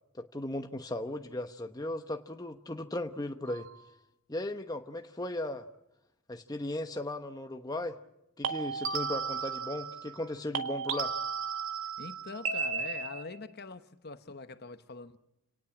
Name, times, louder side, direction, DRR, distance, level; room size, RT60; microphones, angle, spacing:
voice 1, 0.1-3.7 4.3-5.6 6.3-8.0 8.4-11.1, left 1 dB, 15° left, 1.0 m, -36 dB
sound 1, 3.5-3.8 8.4-10.3 10.5-13.4, right 5 dB, 65° right, 1.8 m, -35 dB
voice 2, 12.0-15.2, left 3 dB, 45° left, 1.1 m, -44 dB
29.0 x 18.5 x 7.2 m
head